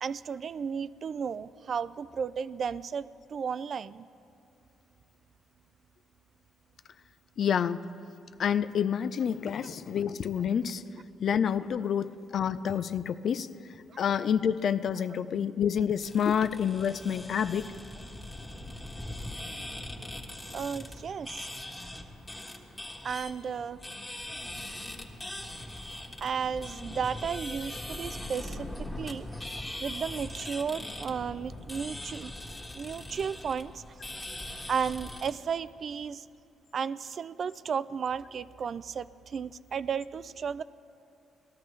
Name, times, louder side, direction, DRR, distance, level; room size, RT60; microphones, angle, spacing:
voice 1, 0.0-4.1 13.9-14.0 20.5-21.5 23.0-23.8 26.2-32.3 32.7-33.8 34.7-36.3 36.7-40.6, right 6 dB, 50° right, 16 dB, 0.3 m, -34 dB
voice 2, 7.4-7.9 8.4-10.8 11.2-13.5 14.0-17.6, left 8 dB, 60° left, 13 dB, 0.4 m, -28 dB
sound 1, 16.0-35.3, left 1 dB, 15° left, 1.6 m, -41 dB
19.0 x 13.5 x 3.2 m, 2.7 s
cardioid pair, 90°, 0 cm